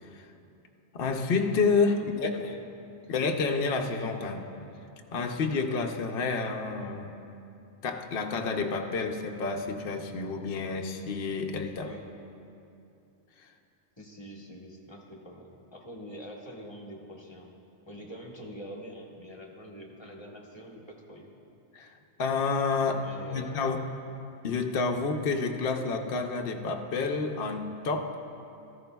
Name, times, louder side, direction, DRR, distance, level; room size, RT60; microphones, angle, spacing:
voice 1, 0.9-2.5 3.1-4.5 5.1-7.1 7.8-11.9 21.7-23.0 23.3-23.8 24.4-28.2, left 4 dB, 60° left, 2 dB, 0.9 m, -29 dB
voice 2, 2.0-2.6 3.0-3.2 11.8-12.1 14.0-17.5 17.9-21.4 22.8-23.8, equal, 25° left, -1 dB, 1.2 m, -45 dB
14.5 x 14.0 x 2.3 m, 2.7 s
omnidirectional pair, 1.2 m